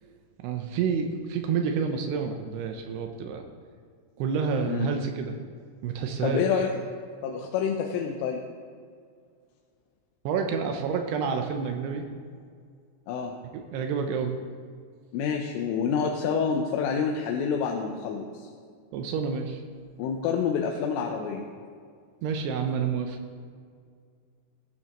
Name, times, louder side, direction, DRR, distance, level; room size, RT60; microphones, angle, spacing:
voice 1, 0.4-3.4 4.2-5.3 5.8-6.5 10.3-12.1 13.5-14.4 18.9-19.6 22.2-23.2, right 6 dB, 85° right, 5 dB, 2.4 m, -29 dB
voice 2, 6.2-6.7 7.2-8.4 13.1-13.4 15.1-18.5 20.0-21.4, left 6 dB, 85° left, 2 dB, 3.3 m, -28 dB
18.0 x 10.5 x 3.0 m, 2.1 s
omnidirectional pair, 5.6 m